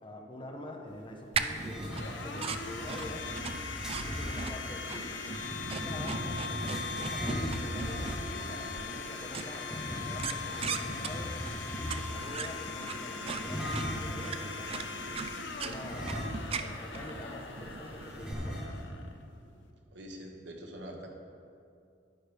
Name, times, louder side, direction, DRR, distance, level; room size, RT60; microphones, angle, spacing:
voice 1, 0.0-3.3 3.9-5.2 5.6-11.3 11.8-16.3 16.6-18.7, left 1 dB, 25° left, 1 dB, 1.0 m, -45 dB
Domestic sounds home sounds, 0.9-19.7, left 4 dB, 75° left, 0.8 m, -41 dB
sound 1, 1.3-18.3, right 5 dB, 30° right, 0.4 m, -40 dB
sound 2, 1.5-4.4 5.3-8.4 9.6-12.3 13.3-14.2 15.8-16.7 17.0-17.1 18.1-19.0, equal, 5° right, 1.4 m, -38 dB
voice 2, 19.9-21.1, equal, 70° right, 1 dB, 1.3 m, -44 dB
10.0 x 10.0 x 3.5 m, 2.5 s
head